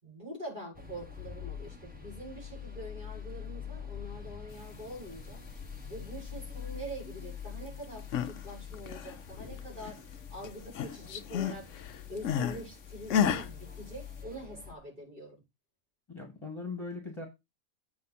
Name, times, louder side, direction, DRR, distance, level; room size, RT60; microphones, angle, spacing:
voice 1, 0.0-5.4 5.9-11.7 12.1-15.4, right 1 dB, 35° right, 6.2 m, -44 dB
sound 1, 0.7-14.7, left 7 dB, 5° right, 1.4 m, -45 dB
sound 2, 7.8-8.4 8.7-10.2 10.4-12.6 13.1-13.5, left 8 dB, 65° left, 1.0 m, -31 dB
voice 2, 16.1-17.3, left 3 dB, 20° left, 2.0 m, -39 dB
8.5 x 5.0 x 4.2 m
omnidirectional pair, 1.4 m